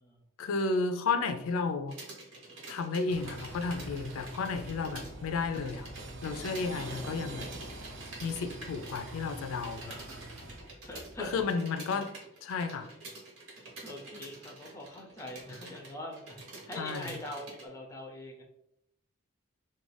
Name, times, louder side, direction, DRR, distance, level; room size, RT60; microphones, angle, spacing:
voice 1, 0.4-1.9 2.7-5.9 6.2-7.5 8.2-9.9 11.2-12.1 12.4-12.9 16.8-17.1, left 4 dB, 80° left, 7 dB, 0.3 m, -32 dB
sound 1, 1.9-5.1 5.4-17.6, right 2 dB, 80° right, 1.0 m, -48 dB
sound 2, 3.1-11.4, right 1 dB, 60° right, 0.6 m, -45 dB
voice 2, 9.8-10.2 10.5-11.3 13.5-18.4, left 1 dB, 15° left, 1 dB, 0.4 m, -43 dB
2.5 x 2.3 x 3.2 m, 0.80 s
head